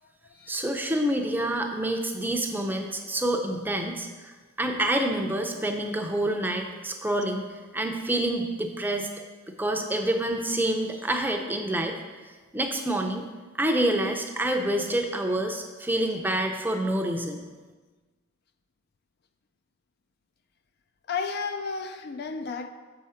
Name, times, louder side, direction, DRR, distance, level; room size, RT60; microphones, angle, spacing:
voice 1, 0.5-9.1 9.6-12.0 12.5-13.3 13.6-17.4, right 1 dB, 10° right, 0.5 m, -27 dB
voice 2, 21.1-22.7, left 5 dB, 50° left, 0.4 m, -33 dB
7.1 x 4.8 x 5.6 m
head